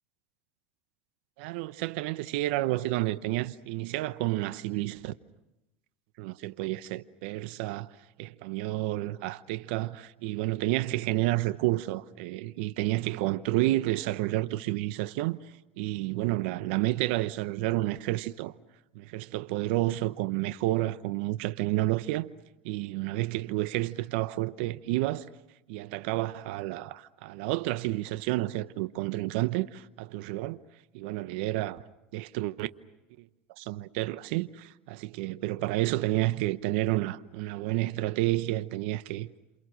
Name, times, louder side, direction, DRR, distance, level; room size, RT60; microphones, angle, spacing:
voice 1, 1.4-5.1 6.2-7.9 8.2-15.4 15.8-18.5 18.9-22.3 22.6-25.3 25.7-30.6 30.9-31.8 32.1-32.7 33.6-39.3, right 17 dB, 70° right, 0.9 m, -30 dB
28.5 x 28.0 x 6.4 m
supercardioid pair, 100°, 6 cm